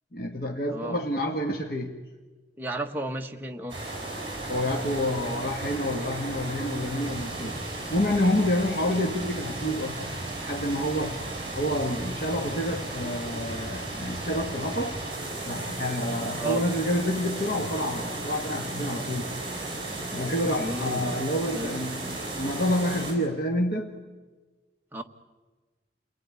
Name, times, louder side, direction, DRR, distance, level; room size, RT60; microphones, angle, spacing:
voice 1, 0.1-1.9 4.5-7.6 7.9-11.2 11.5-15.0 15.4-19.2 20.1-23.9, left 1 dB, 55° left, 1 dB, 1.8 m, -28 dB
voice 2, 2.6-3.8 16.4-16.7 20.5-21.1 21.5-21.8 24.9-25.0, right 2 dB, 10° right, 2 dB, 1.3 m, -33 dB
sound 1, 3.7-23.1, right 2 dB, 30° right, 7.9 m, -35 dB
29.0 x 19.0 x 9.7 m, 1.3 s
head